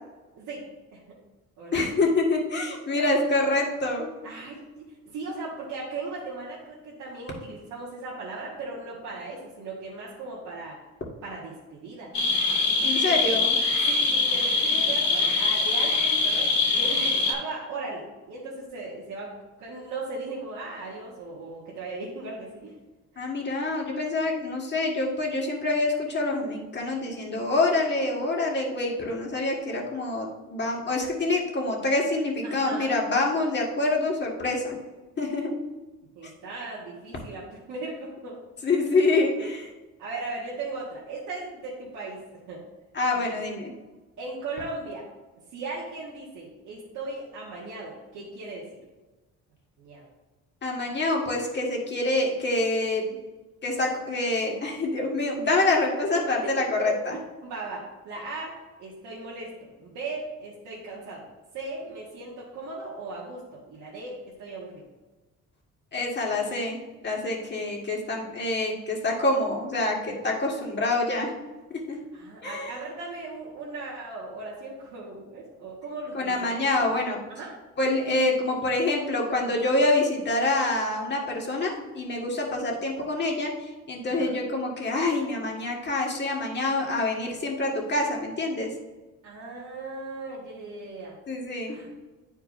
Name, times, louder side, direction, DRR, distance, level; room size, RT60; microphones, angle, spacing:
voice 1, 1.7-4.1 12.8-13.6 23.2-34.7 35.2-35.6 38.6-39.7 42.9-43.7 50.6-53.2 53.6-57.1 65.9-66.8 67.0-71.3 71.9-72.0 72.4-72.7 76.1-77.2 77.8-83.5 83.9-88.7 91.3-91.8, left 2 dB, 35° left, -1 dB, 1.7 m, -26 dB
voice 2, 2.8-3.2 4.2-10.8 11.2-12.1 13.0-13.4 13.8-22.7 32.4-32.9 36.1-38.4 38.8-38.9 39.4-39.5 40.0-42.2 42.5-42.6 43.1-43.3 44.2-45.0 45.5-48.7 49.8-50.0 56.3-58.5 58.8-59.5 59.8-61.3 61.5-64.8 66.3-66.4 72.1-77.5 84.1-84.3 89.2-91.1 91.7-91.9, right 3 dB, 85° right, -6 dB, 1.6 m, -37 dB
sound 1, 12.1-17.3, left 3 dB, 65° left, 1.5 m, -23 dB
10.0 x 4.5 x 2.5 m, 1.2 s
cardioid pair, 90°, 30 cm